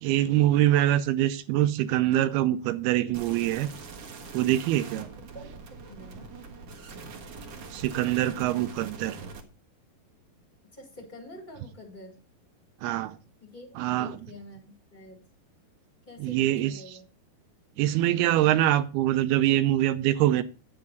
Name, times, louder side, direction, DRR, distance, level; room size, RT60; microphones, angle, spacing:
voice 1, 0.0-3.7 4.3-5.1 7.7-9.3 12.8-13.2 13.8-14.2 16.2-17.0 17.8-20.4, right 13 dB, 85° right, 2.6 m, -24 dB
sound 1, 3.1-9.4, right 4 dB, 55° right, 2.1 m, -43 dB
voice 2, 5.9-6.3 10.7-12.2 13.4-15.2 16.1-17.0, left 1 dB, 20° left, 1.4 m, -47 dB
10.0 x 8.6 x 4.0 m
omnidirectional pair, 4.5 m